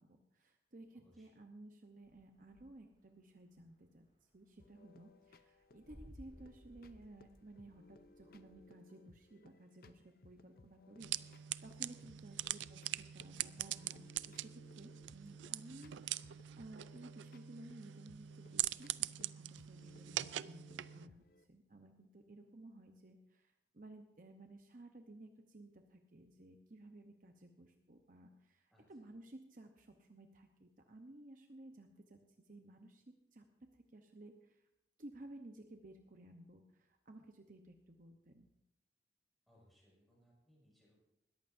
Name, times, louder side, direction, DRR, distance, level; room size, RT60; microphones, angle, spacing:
voice 1, 0.0-4.1 4.3-33.4 33.9-34.7 35.0-38.5, right 1 dB, 45° right, 4 dB, 0.9 m, -56 dB
voice 2, 0.9-1.3 11.9-12.3 28.7-29.0 39.5-41.0, equal, ahead, -5 dB, 5.9 m, -68 dB
sound 1, 2.0-3.1 3.3-8.6, equal, 25° right, 4.1 m, -60 dB
sound 2, 4.6-21.4, left 2 dB, 50° left, 0.6 m, -65 dB
sound 3, 11.0-21.1, right 13 dB, 85° right, 0.4 m, -43 dB
20.5 x 14.5 x 2.7 m, 0.85 s
head